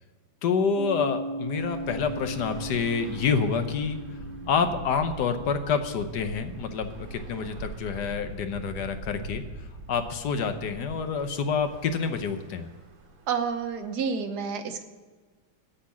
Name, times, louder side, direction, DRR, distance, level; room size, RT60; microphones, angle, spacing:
voice 1, 0.4-4.0 4.5-9.4 9.9-12.7, left 5 dB, 65° left, 8 dB, 1.3 m, -27 dB
Piano, 0.7-8.0, right 1 dB, 40° right, 1.5 m, -39 dB
Bus / Traffic noise roadway noise, 1.6-14.0, right 2 dB, 85° right, 2.3 m, -43 dB
voice 2, 13.3-14.8, right 6 dB, 60° right, 8 dB, 1.4 m, -29 dB
8.5 x 7.9 x 8.4 m, 1.4 s
omnidirectional pair, 2.2 m